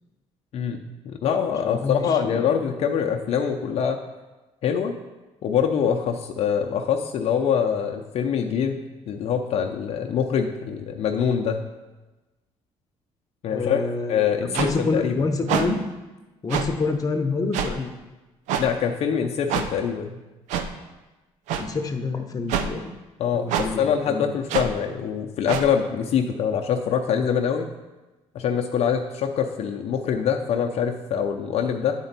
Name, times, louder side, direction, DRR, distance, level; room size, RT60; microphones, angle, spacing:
voice 1, 1.0-4.0 4.6-5.0 5.4-8.8 9.1-11.6 13.4-13.8 14.1-15.1 18.6-20.2 23.2-27.7 28.3-31.9, left 7 dB, 60° left, 3 dB, 0.6 m, -24 dB
voice 2, 1.6-2.4 13.5-15.8 16.4-17.9 21.6-22.9 23.3-24.3, left 3 dB, 30° left, 5 dB, 0.8 m, -27 dB
sound 1, 14.5-14.7 15.5-15.6 16.5-16.7 17.5-17.7 18.5-18.7 19.5-19.7 20.5-20.7 21.5-21.6 22.5-22.7 23.5-23.7 24.5-24.7 25.5-25.7, right 8 dB, 85° right, 0.6 m, -25 dB
9.8 x 4.4 x 4.1 m, 1.1 s
cardioid pair, 100°, 12 cm